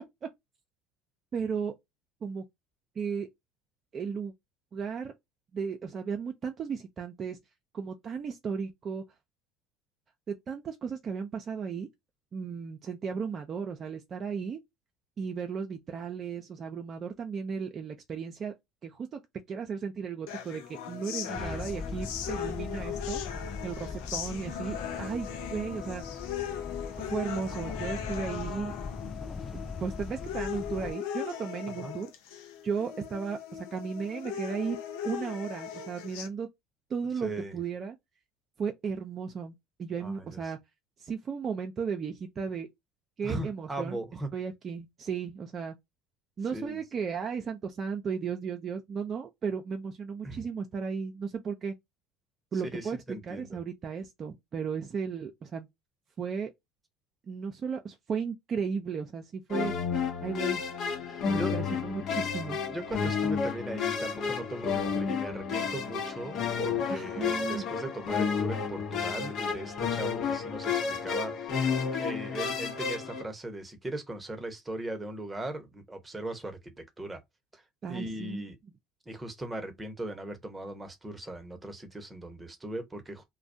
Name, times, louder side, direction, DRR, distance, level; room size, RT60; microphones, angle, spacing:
voice 1, 1.3-1.8 2.2-2.4 3.0-3.3 3.9-4.3 4.7-5.1 5.5-7.4 7.7-9.0 10.3-11.9 12.3-14.6 15.2-18.5 18.8-19.2 19.5-26.0 27.1-28.7 29.5-32.1 32.6-34.8 35.0-36.5 36.9-38.0 38.6-40.6 41.0-42.7 43.2-44.0 44.3-45.7 46.4-51.7 52.5-53.0 53.3-55.7 56.2-56.5 57.3-59.7 60.2-60.6 61.3-62.6 66.9-67.6 77.8-78.4, right 6 dB, 40° right, 0.4 m, -35 dB
sound 1, 20.3-36.3, left 9 dB, 75° left, 0.5 m, -38 dB
sound 2, 21.3-30.9, left 4 dB, 25° left, 0.3 m, -40 dB
voice 2, 21.3-21.7 31.7-32.0 37.2-37.6 40.0-40.5 43.2-44.3 46.5-46.8 50.2-50.5 52.6-53.5 61.1-61.6 62.7-71.6 71.9-77.2 77.5-77.6 77.9-78.6 79.1-83.2, right 1 dB, 15° right, 0.9 m, -39 dB
sound 3, 59.5-73.2, left 6 dB, 55° left, 0.8 m, -31 dB
2.2 x 2.1 x 2.6 m
hypercardioid pair, 80°, 0 cm